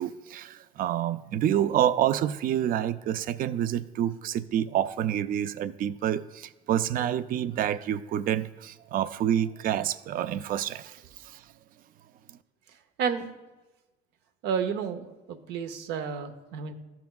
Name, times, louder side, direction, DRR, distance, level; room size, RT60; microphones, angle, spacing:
voice 1, 0.0-11.4, right 10 dB, 55° right, 0.4 m, -28 dB
voice 2, 14.4-16.7, right 7 dB, 90° right, 0.7 m, -31 dB
13.0 x 5.8 x 2.3 m
cardioid pair, 110°, 17 cm